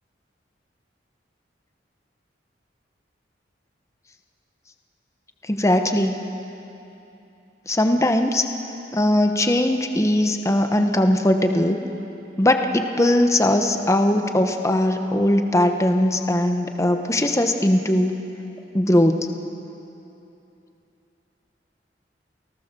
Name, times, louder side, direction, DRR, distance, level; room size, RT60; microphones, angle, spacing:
voice 1, 5.5-6.2 7.7-8.4 8.9-11.8 12.4-18.2 18.7-19.3, left 1 dB, 15° left, 5 dB, 1.0 m, -20 dB
29.0 x 18.0 x 6.9 m, 2.9 s
head